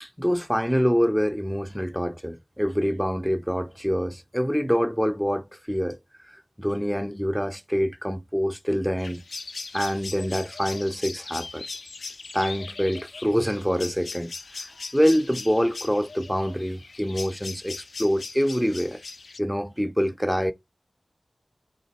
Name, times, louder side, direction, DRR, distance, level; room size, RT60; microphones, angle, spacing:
voice 1, 0.0-6.0 6.3-9.2 9.7-11.7 12.3-14.3 14.6-19.0 19.4-20.5, equal, ahead, 0.5 m, -25 dB
sound 1, 9.0-19.4, left 3 dB, 85° left, 0.4 m, -39 dB
3.9 x 2.4 x 4.2 m
wide cardioid pair, 55°, 0 cm